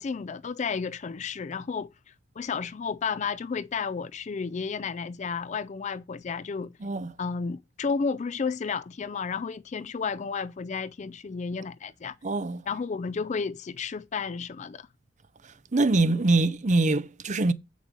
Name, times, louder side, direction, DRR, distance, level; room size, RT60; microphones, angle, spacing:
voice 1, 0.0-1.9 2.4-6.7 7.2-12.2 12.7-14.9, left 5 dB, 35° left, 0.4 m, -32 dB
voice 2, 6.8-7.1 12.2-12.6 15.7-17.5, right 2 dB, 40° right, 0.6 m, -23 dB
8.1 x 6.3 x 5.1 m
head